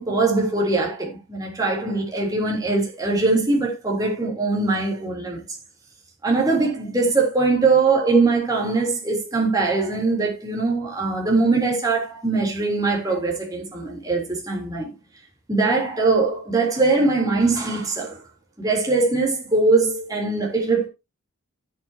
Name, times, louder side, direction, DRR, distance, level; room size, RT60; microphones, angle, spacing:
voice 1, 0.0-5.4 6.2-14.9 15.5-18.2 18.6-20.9, right 3 dB, 15° right, 3.7 m, -21 dB
16.5 x 6.8 x 2.9 m
head